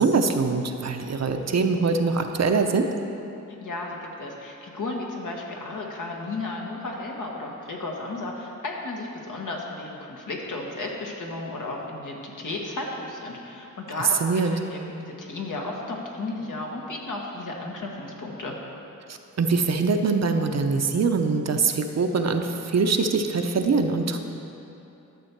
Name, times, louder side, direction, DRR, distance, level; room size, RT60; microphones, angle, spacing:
voice 1, 0.0-2.9 14.2-14.6 19.4-24.2, right 4 dB, 55° right, 6 dB, 0.7 m, -23 dB
voice 2, 3.6-14.2 14.5-18.6, left 2 dB, 70° left, -1 dB, 1.5 m, -34 dB
12.0 x 6.9 x 4.6 m, 2.9 s
cardioid pair, 80°, 32 cm